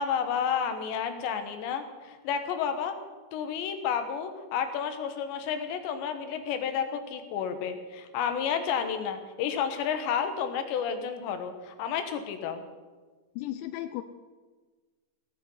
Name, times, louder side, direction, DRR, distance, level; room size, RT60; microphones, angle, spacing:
voice 1, 0.0-2.9 3.3-12.6, left 7 dB, 70° left, 7 dB, 3.2 m, -31 dB
voice 2, 13.4-14.0, left 14 dB, 85° left, 10 dB, 2.6 m, -35 dB
17.5 x 14.5 x 5.5 m, 1.3 s
omnidirectional pair, 5.9 m